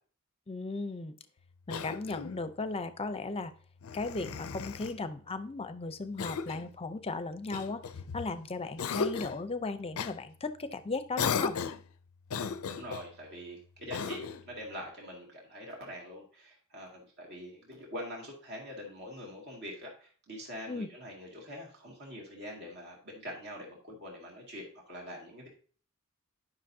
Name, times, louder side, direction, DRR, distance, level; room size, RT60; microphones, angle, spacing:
voice 1, 0.5-1.1 1.7-3.5 3.9-7.8 8.1-11.6 20.7-20.9, left 3 dB, 25° left, 11 dB, 0.6 m, -36 dB
Cough, 1.7-2.5 3.8-5.0 6.2-6.7 7.5-8.3 8.8-9.4 9.9-10.2 11.2-11.9 12.3-13.1 13.9-14.5, left 6 dB, 70° left, 0.5 m, -35 dB
voice 2, 12.6-25.5, equal, 50° right, -1 dB, 2.1 m, -44 dB
10.0 x 5.9 x 2.7 m, 0.42 s
head